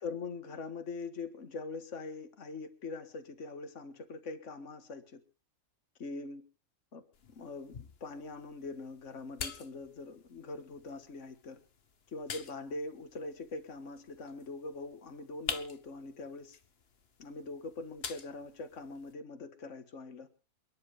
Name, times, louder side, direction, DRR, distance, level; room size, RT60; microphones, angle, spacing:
voice 1, 0.0-5.2 6.0-6.4 6.9-7.0 7.3-11.6 12.1-16.6 17.2-20.3, left 3 dB, 65° left, 8 dB, 1.9 m, -43 dB
sound 1, 7.1-19.1, left 5 dB, 50° left, 1.4 m, -47 dB
28.5 x 10.5 x 3.4 m, 0.33 s
omnidirectional pair, 1.4 m